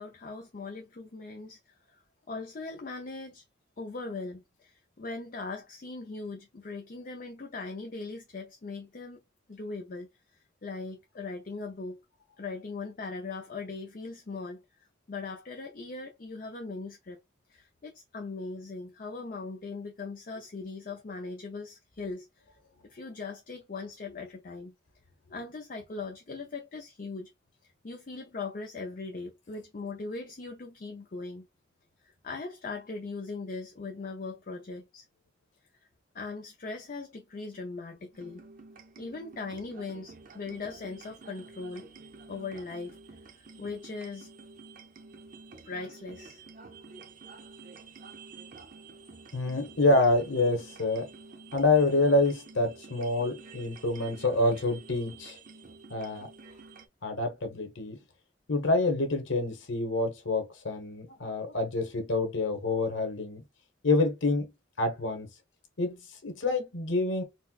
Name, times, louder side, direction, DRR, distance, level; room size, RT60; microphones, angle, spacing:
voice 1, 0.0-2.0 2.3-3.4 3.8-9.2 9.5-12.0 12.4-14.6 15.1-17.2 17.5-22.4 22.8-24.7 25.3-27.3 27.6-31.5 32.0-35.1 36.1-38.4 39.0-41.9 42.3-43.0 43.4-44.3 45.6-46.4, left 3 dB, 45° left, 0.5 m, -40 dB
sound 1, 38.1-56.9, right 4 dB, 45° right, 0.6 m, -50 dB
voice 2, 49.3-51.1 51.5-55.4 55.9-56.3 57.0-58.0 58.5-63.4 63.8-64.5 64.8-65.3 65.8-67.2, left 2 dB, 90° left, 1.1 m, -27 dB
4.3 x 2.1 x 2.3 m
head